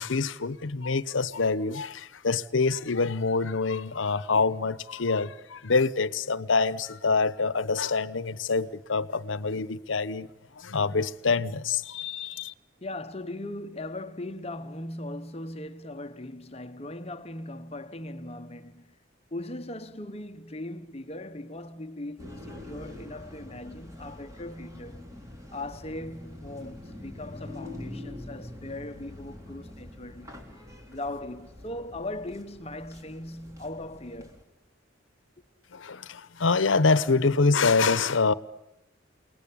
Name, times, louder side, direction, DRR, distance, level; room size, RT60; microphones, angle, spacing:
voice 1, 0.0-10.3 10.6-12.5 35.7-38.3, left 4 dB, 85° left, 0.9 m, -26 dB
voice 2, 12.8-19.0 19.3-25.0 25.5-30.4 30.9-34.4, left 1 dB, 30° left, 1.0 m, -39 dB
sound 1, 22.2-34.4, left 1 dB, 15° right, 3.8 m, -44 dB
29.0 x 19.5 x 8.5 m
head